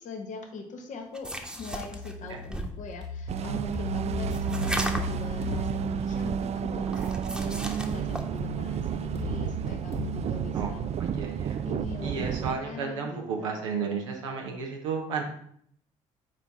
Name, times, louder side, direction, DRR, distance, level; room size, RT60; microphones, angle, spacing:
voice 1, 0.0-1.3 1.6-10.8 11.6-13.6, left 4 dB, 55° left, 3 dB, 1.0 m, -41 dB
sound 1, 1.1-2.8 4.3-5.2 6.9-8.3, equal, 5° right, 1.1 m, -35 dB
sound 2, 1.6-6.6 8.4-11.4, left 2 dB, 35° left, 1.5 m, -37 dB
sound 3, 3.3-12.6, right 8 dB, 45° right, 0.4 m, -31 dB
voice 2, 10.5-11.6 12.0-15.2, right 5 dB, 90° right, 0 dB, 0.9 m, -33 dB
5.9 x 4.5 x 4.1 m, 0.65 s
hypercardioid pair, 50°, 16 cm